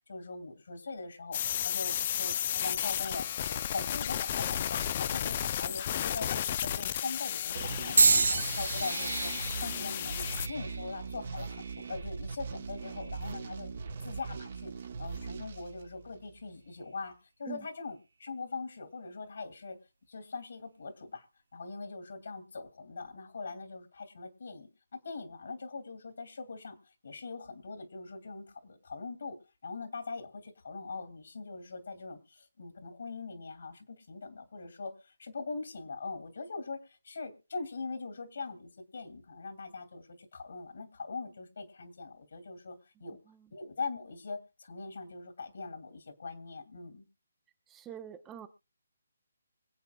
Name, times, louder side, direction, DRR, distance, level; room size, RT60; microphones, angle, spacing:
voice 1, 0.1-13.7 14.0-14.7 15.0-17.1 17.4-19.8 20.1-21.2 21.5-26.8 27.0-29.4 29.6-34.9 35.2-43.2 43.5-47.0, left 4 dB, 60° left, 7 dB, 2.9 m, -41 dB
sound 1, 1.3-10.5, left 10 dB, 35° left, 0.6 m, -33 dB
sound 2, 7.5-16.4, right 5 dB, 50° right, 1.4 m, -41 dB
sound 3, 8.0-12.1 12.8-13.2 14.2-14.4, right 4 dB, 65° right, 0.7 m, -30 dB
voice 2, 47.7-48.5, right 10 dB, 15° right, 8 dB, 0.9 m, -44 dB
24.5 x 8.6 x 2.4 m, 0.31 s
figure-of-eight pair, 145°, 0 cm